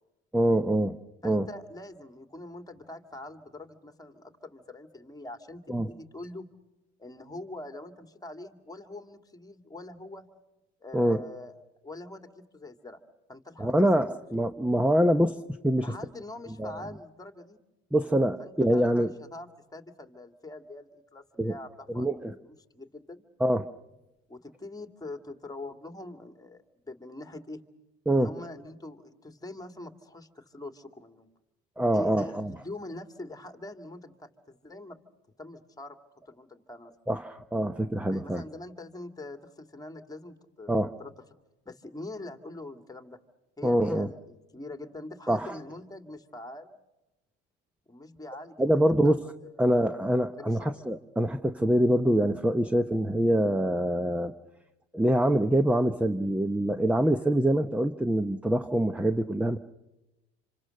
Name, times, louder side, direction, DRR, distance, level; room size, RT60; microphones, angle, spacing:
voice 1, 0.3-1.0 1.2-1.5 5.7-5.9 10.9-11.2 13.6-15.8 16.6-16.7 17.9-19.1 21.4-21.5 21.9-22.3 23.4-23.6 28.1-28.3 31.8-32.5 37.1-38.4 40.7-40.9 43.6-44.1 45.3-45.6 48.6-49.2 49.6-54.3 54.9-59.6, right 1 dB, 5° right, 11 dB, 0.8 m, -25 dB
voice 2, 1.2-6.5 7.0-10.3 10.8-11.5 11.8-13.0 13.3-13.8 15.8-17.6 18.4-22.1 22.4-23.2 24.3-27.6 28.1-31.3 31.9-35.0 35.4-36.0 36.3-36.9 38.1-40.7 41.0-41.1 41.7-43.2 43.6-46.8 47.9-48.6 49.0-49.2 49.4-50.8, left 2 dB, 10° left, 6 dB, 2.3 m, -44 dB
27.0 x 26.0 x 6.6 m, 1.0 s
supercardioid pair, 90°, 30 cm